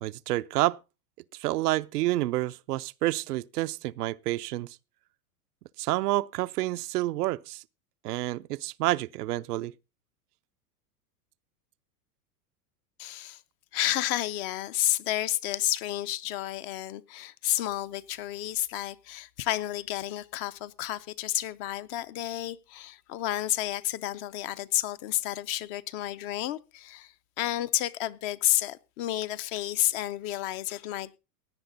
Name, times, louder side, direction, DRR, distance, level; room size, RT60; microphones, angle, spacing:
voice 1, 0.0-0.8 1.4-4.7 5.8-7.6 8.0-9.7, right 17 dB, 90° right, 0.6 m, -29 dB
voice 2, 13.0-13.4 13.7-31.2, left 13 dB, 40° left, 0.5 m, -31 dB
16.5 x 9.7 x 3.9 m
supercardioid pair, 140°, 46 cm